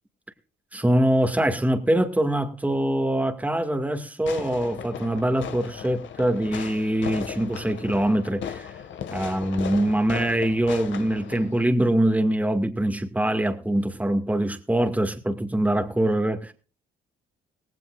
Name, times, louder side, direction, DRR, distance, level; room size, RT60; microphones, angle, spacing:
voice 1, 0.7-8.7 9.1-16.5, right 1 dB, 5° right, 2.2 m, -23 dB
Fireworks, 4.2-11.7, left 8 dB, 70° left, 1.9 m, -37 dB
18.0 x 16.5 x 2.5 m
cardioid pair, 90°, 20 cm